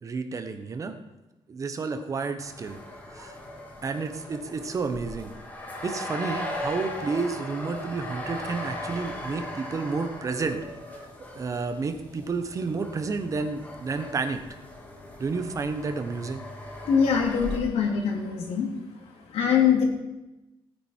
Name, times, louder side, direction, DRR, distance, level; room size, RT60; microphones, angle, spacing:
voice 1, 0.0-0.9 1.5-2.8 3.1-3.4 3.8-5.3 5.8-10.6 10.9-11.1 11.3-14.4 15.2-16.4, right 4 dB, 35° right, 8 dB, 1.1 m, -30 dB
sound 1, 2.4-17.6, left 1 dB, 15° left, 2.3 m, -38 dB
voice 2, 16.8-18.7 19.3-19.8, left 7 dB, 85° left, 1 dB, 2.8 m, -23 dB
18.0 x 9.3 x 4.6 m, 1.0 s
cardioid pair, 145°, 10 cm